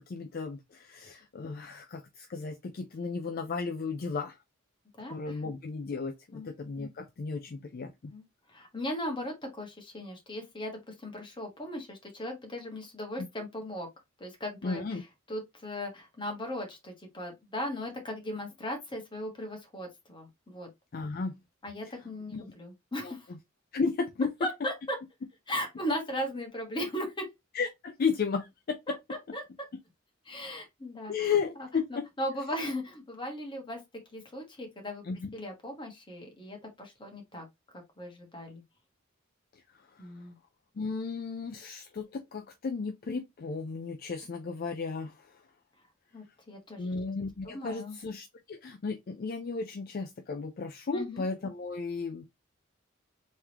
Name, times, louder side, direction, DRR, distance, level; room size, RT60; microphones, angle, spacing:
voice 1, 0.1-4.4 5.1-8.1 13.2-13.3 14.6-15.0 20.9-21.4 21.8-21.9 22.3-22.5 23.0-23.4 23.7-24.3 27.5-29.0 31.1-32.1 35.0-35.3 39.9-40.1 40.8-45.4 46.8-52.2, left 5 dB, 45° left, 0.4 m, -34 dB
voice 2, 5.0-5.4 6.3-6.5 8.1-8.2 8.5-13.9 14.2-15.0 15.3-20.7 21.6-23.3 24.4-25.0 25.5-27.3 29.1-29.4 30.3-31.3 31.6-33.8 34.1-35.0 35.3-37.4 38.0-38.6 40.0-40.4 46.1-46.9 47.4-48.0 50.9-51.2, left 1 dB, 25° left, 1.3 m, -37 dB
3.5 x 3.2 x 2.9 m
head